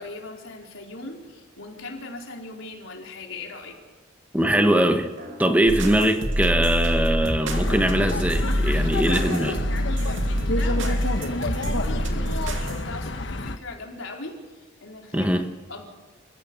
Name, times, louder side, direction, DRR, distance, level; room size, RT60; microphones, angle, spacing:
voice 1, 0.0-3.8 8.7-15.9, left 2 dB, 90° left, 4.5 m, -39 dB
sound 1, 3.5-4.2 5.2-6.0 6.5-6.6 8.2-9.6 10.7-10.8, right 2 dB, 50° right, 5.1 m, -46 dB
voice 2, 4.3-5.1 5.4-9.5 15.1-15.4, right 1 dB, 10° right, 1.3 m, -21 dB
sound 2, 5.7-12.8, equal, 70° right, 2.6 m, -26 dB
sound 3, 7.5-13.6, left 2 dB, 65° left, 1.2 m, -30 dB
28.5 x 15.5 x 7.2 m
head